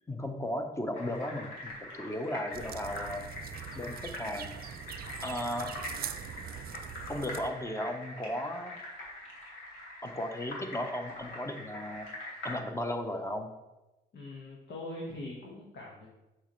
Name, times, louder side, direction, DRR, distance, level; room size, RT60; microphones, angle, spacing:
voice 1, 0.1-3.2 3.7-4.6 5.2-5.7 7.1-8.8 10.0-12.1 12.4-13.5, left 1 dB, 15° left, 5 dB, 0.9 m, -35 dB
sound 1, 0.9-12.5, left 1 dB, 90° left, 1.9 m, -44 dB
sound 2, 2.5-7.5, right 9 dB, 50° right, 0.4 m, -43 dB
voice 2, 14.1-16.1, left 1 dB, 60° left, -3 dB, 1.5 m, -42 dB
6.3 x 6.0 x 3.2 m, 1.0 s
cardioid pair, 90°, 20 cm